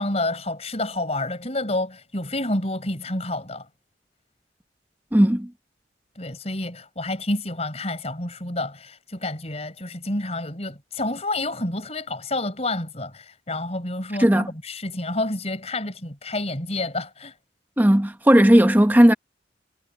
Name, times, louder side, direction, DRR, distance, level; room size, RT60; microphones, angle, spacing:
voice 1, 0.0-3.7 6.1-17.3, left 2 dB, 35° left, 4.9 m, -29 dB
voice 2, 5.1-5.5 14.2-14.5 17.8-19.1, equal, 10° right, 0.9 m, -15 dB
head